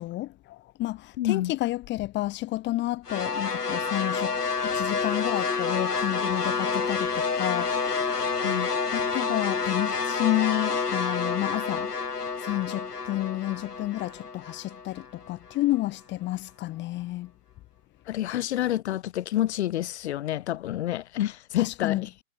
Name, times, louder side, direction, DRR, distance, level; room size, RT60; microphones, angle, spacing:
voice 1, 0.0-4.4 4.6-7.7 8.9-11.9 12.4-17.3 21.6-22.1, left 16 dB, 25° left, 4.6 m, -30 dB
voice 2, 1.2-1.5 8.4-8.7 18.1-22.1, left 13 dB, 45° left, 3.8 m, -28 dB
sound 1, 3.1-15.3, left 5 dB, 80° left, 1.9 m, -29 dB
figure-of-eight pair, 120°, 46 cm